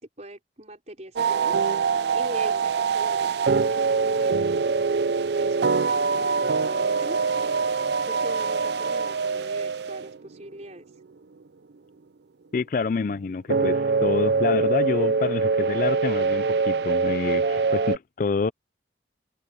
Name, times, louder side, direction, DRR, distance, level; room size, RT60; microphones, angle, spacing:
voice 1, 0.0-1.6 2.1-4.6 5.4-7.2 8.1-10.9, right 1 dB, 40° right, 4.6 m, -41 dB
sound 1, 1.2-10.3 13.5-18.0, right 4 dB, 70° right, 0.5 m, -24 dB
voice 2, 12.5-18.5, left 4 dB, 50° left, 0.4 m, -27 dB
head